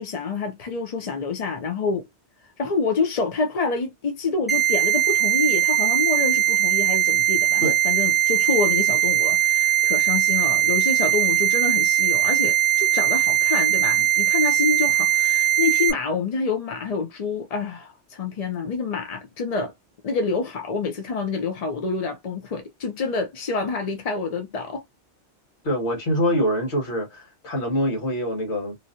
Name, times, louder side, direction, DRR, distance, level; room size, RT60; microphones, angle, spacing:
voice 1, 0.0-2.1 2.6-19.7 20.0-24.8, left 4 dB, 50° left, 0.5 m, -27 dB
sound 1, 4.5-15.9, right 11 dB, ahead, 0.5 m, -20 dB
voice 2, 25.6-28.8, equal, 70° left, 1.7 m, -24 dB
3.1 x 2.6 x 2.5 m
omnidirectional pair, 1.2 m